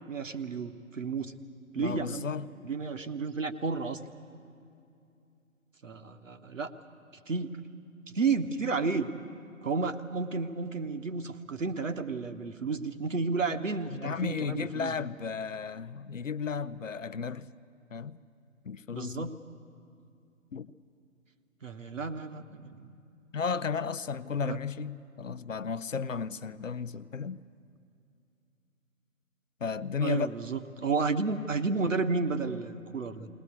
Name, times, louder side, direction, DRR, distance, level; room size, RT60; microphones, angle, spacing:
voice 1, 0.1-1.3 1.7-2.3 2.6-4.0 5.8-6.7 7.3-7.6 8.1-9.1 9.6-15.0 18.9-19.3 21.6-22.9 24.4-24.6 30.0-33.3, right 4 dB, 60° right, 1.2 m, -32 dB
voice 2, 1.8-2.5 13.9-17.5 17.9-18.2 18.6-19.3 20.5-20.7 23.3-27.4 29.6-30.3, left 5 dB, 65° left, 0.6 m, -34 dB
20.0 x 20.0 x 8.2 m
figure-of-eight pair, 145°, 42 cm